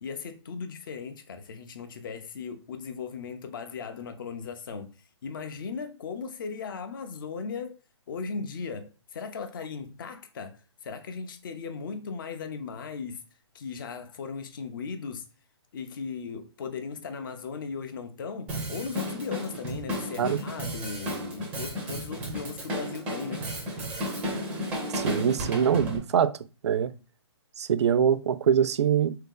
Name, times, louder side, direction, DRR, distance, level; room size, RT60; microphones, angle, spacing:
voice 1, 0.0-7.8 8.1-13.2 13.5-15.3 15.7-23.4, left 5 dB, 45° left, 0.5 m, -37 dB
Drum kit, 18.5-26.0, equal, 10° right, 0.5 m, -33 dB
voice 2, 24.9-26.4 26.6-26.9 27.6-29.1, right 8 dB, 65° right, 0.4 m, -24 dB
3.7 x 2.8 x 3.6 m
hypercardioid pair, 165°, 15 cm